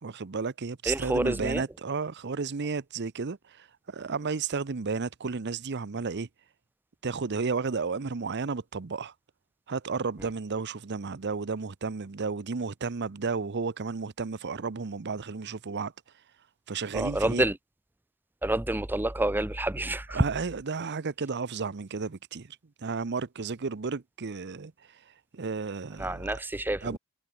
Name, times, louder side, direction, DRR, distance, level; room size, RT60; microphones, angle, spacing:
voice 1, 0.0-6.3 7.0-9.1 9.7-15.9 16.7-17.5 20.1-25.0 25.3-26.3 26.8-27.0, right 4 dB, 55° right, 0.7 m, -33 dB
voice 2, 0.9-1.6 16.9-17.6 18.4-20.2 26.0-27.0, right 1 dB, 10° right, 0.7 m, -28 dB
head